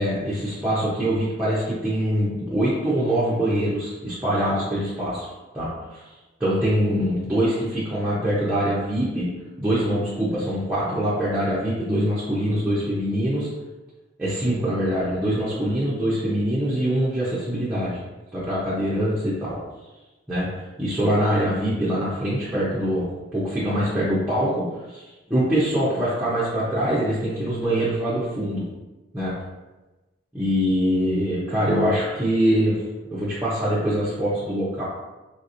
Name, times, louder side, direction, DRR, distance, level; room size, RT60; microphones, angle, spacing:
voice 1, 0.0-5.3 5.5-6.0 6.4-9.3 9.6-13.5 14.2-18.0 18.3-19.6 20.3-23.0 23.3-28.6 29.1-29.3 30.3-32.7 33.1-34.8, equal, 5° right, -11 dB, 0.5 m, -24 dB
3.4 x 2.8 x 2.5 m, 1.1 s
head